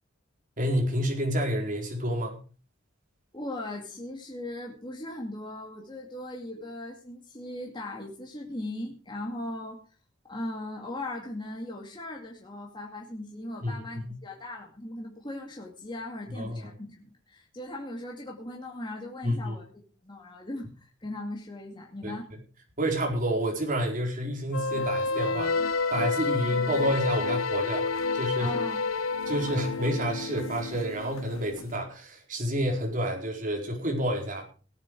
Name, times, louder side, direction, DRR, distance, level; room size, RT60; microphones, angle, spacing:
voice 1, 0.6-2.4 13.6-13.7 14.1-14.2 16.3-16.7 19.2-19.6 22.0-22.2 22.8-25.6 25.9-27.9 28.1-28.5 29.3-34.5, equal, 40° right, 1 dB, 4.5 m, -29 dB
voice 2, 3.3-9.8 10.3-19.6 20.0-22.3 28.4-28.8, left 1 dB, 25° left, -1 dB, 2.4 m, -38 dB
sound 1, 24.5-31.8, left 4 dB, 90° left, 0.9 m, -29 dB
18.5 x 9.0 x 4.8 m, 0.36 s
head